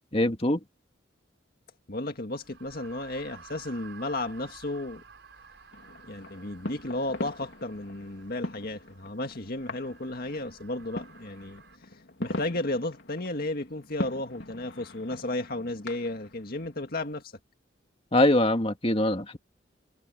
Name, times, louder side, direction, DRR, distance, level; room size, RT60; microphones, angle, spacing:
voice 1, 0.1-0.6 18.1-19.4, left 1 dB, 30° left, 2.2 m, -23 dB
voice 2, 1.9-5.0 6.0-17.3, left 2 dB, 55° left, 1.9 m, -34 dB
sound 1, 2.4-11.8, right 6 dB, 65° right, 6.8 m, -53 dB
sound 2, 5.7-17.2, left 1 dB, 70° left, 3.5 m, -41 dB
head